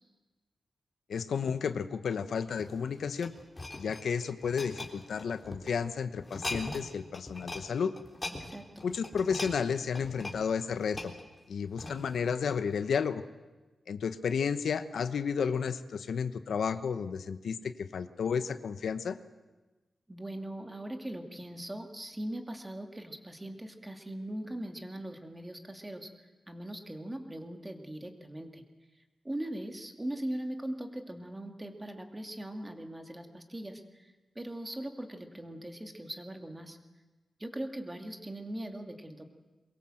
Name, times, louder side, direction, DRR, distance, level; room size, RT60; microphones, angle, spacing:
voice 1, 1.1-3.3 3.8-7.9 8.8-11.1 11.5-13.2 13.9-19.2, left 6 dB, 85° left, 11 dB, 1.0 m, -32 dB
sound 1, 2.6-5.7 6.2-6.9 7.1-7.7 8.0-12.2 12.8-12.9, left 2 dB, 20° left, 3.5 m, -41 dB
voice 2, 8.4-8.9 20.1-28.6 29.2-36.8 37.4-39.2, right 1 dB, 15° right, 4 dB, 2.4 m, -40 dB
23.0 x 22.0 x 7.8 m, 1.2 s
wide cardioid pair, 110°, 0 cm